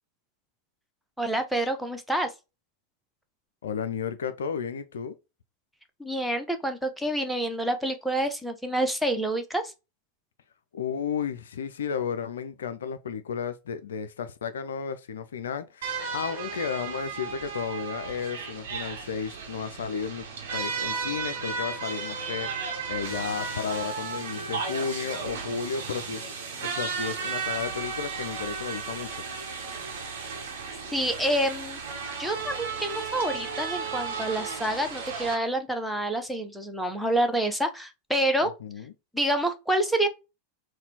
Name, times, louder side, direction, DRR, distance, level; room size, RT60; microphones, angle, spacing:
voice 1, 1.2-2.3 6.0-9.7 30.9-31.8 32.2-38.5 39.1-40.1, right 1 dB, ahead, 0.6 m, -27 dB
voice 2, 3.6-5.1 10.7-20.3 20.5-26.2 26.6-29.2 38.6-38.9, left 7 dB, 65° left, 0.3 m, -33 dB
sound 1, 15.8-35.3, right 5 dB, 60° right, 1.0 m, -34 dB
4.1 x 2.2 x 2.8 m
figure-of-eight pair, 90°, 0 cm